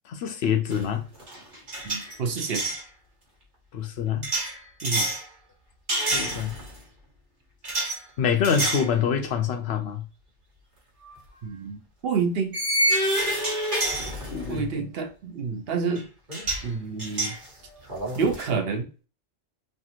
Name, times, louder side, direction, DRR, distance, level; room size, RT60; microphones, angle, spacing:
voice 1, 0.1-1.0 3.7-4.3 5.9-6.6 8.2-10.0 14.3-14.9, left 7 dB, 65° left, 0.9 m, -26 dB
sound 1, 0.7-0.9 1.2-2.8 4.2-5.2 5.9-6.8 7.6-8.0 8.4-8.9 9.4-9.5 11.0-11.2 12.5-14.6 16.0-16.1 16.3-16.7 17.0-18.5, right 1 dB, 45° right, 1.4 m, -28 dB
voice 2, 1.8-2.7 4.8-5.1 11.4-12.6 14.5-16.1 16.6-17.4 18.1-18.9, right 5 dB, 60° right, 0.9 m, -28 dB
3.3 x 2.5 x 2.7 m
omnidirectional pair, 1.2 m